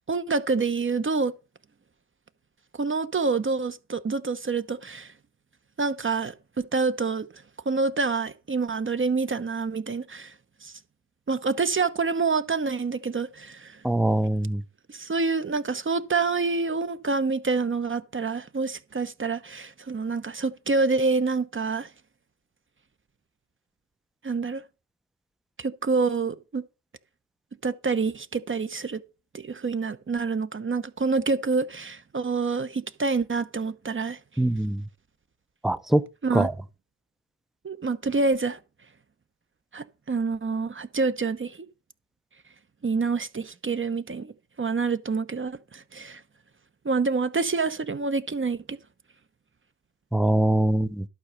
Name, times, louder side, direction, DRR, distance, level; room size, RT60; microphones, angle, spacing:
voice 1, 0.1-1.3 2.7-5.1 5.8-7.3 7.6-10.3 10.6-10.7 11.3-13.8 14.9-21.9 24.2-24.6 25.6-26.6 27.6-29.0 29.3-34.2 36.2-36.5 37.6-38.6 39.7-41.7 42.8-44.3 44.6-46.2 46.8-48.8, right 4 dB, 25° right, 1.0 m, -27 dB
voice 2, 13.8-14.6 34.4-34.8 35.6-36.0 36.3-36.5 50.1-51.1, right 1 dB, ahead, 0.6 m, -23 dB
11.5 x 4.9 x 6.7 m
hypercardioid pair, 55°, 44 cm